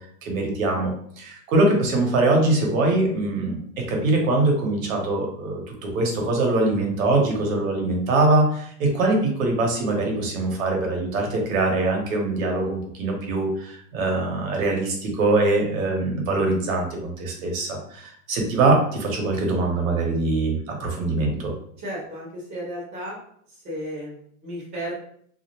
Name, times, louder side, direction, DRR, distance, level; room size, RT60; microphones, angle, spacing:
voice 1, 0.2-21.5, right 2 dB, 75° right, 1 dB, 0.9 m, -23 dB
voice 2, 21.8-23.2 23.6-24.2 24.4-24.9, equal, 10° right, -12 dB, 0.3 m, -33 dB
2.4 x 2.1 x 2.8 m, 0.64 s
supercardioid pair, 175°, 41 cm